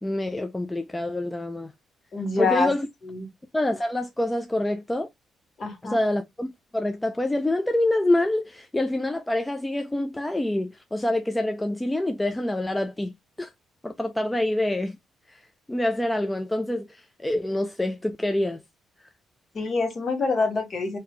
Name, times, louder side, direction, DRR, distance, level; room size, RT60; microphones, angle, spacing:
voice 1, 0.0-1.7 2.4-2.9 3.5-5.1 5.8-6.5 6.7-13.5 13.8-15.0 15.3-18.6 19.0-19.1, left 1 dB, 10° left, 0.4 m, -26 dB
voice 2, 2.1-2.7 3.0-3.3 5.6-6.0 19.5-21.0, left 3 dB, 45° left, 1.5 m, -26 dB
3.4 x 2.8 x 3.2 m
cardioid pair, 90°, 0 cm